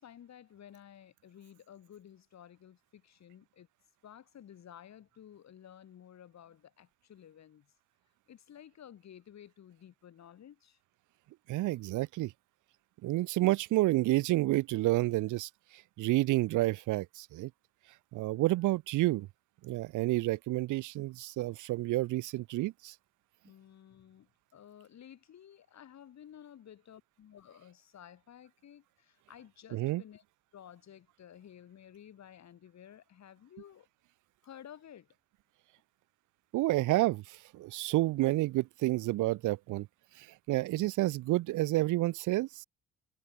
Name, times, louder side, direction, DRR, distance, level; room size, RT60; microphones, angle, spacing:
voice 1, 0.0-3.7 4.0-7.7 8.3-10.8 18.3-18.6 23.4-30.2 30.5-33.9 34.4-35.1 40.7-40.9, left 10 dB, 65° left, 4.9 m, -54 dB
voice 2, 11.5-12.3 13.0-15.5 16.0-17.5 18.1-19.3 19.6-22.9 29.7-30.0 36.5-39.9 40.2-42.6, right 18 dB, 85° right, 0.7 m, -29 dB
cardioid pair, 90°, 30 cm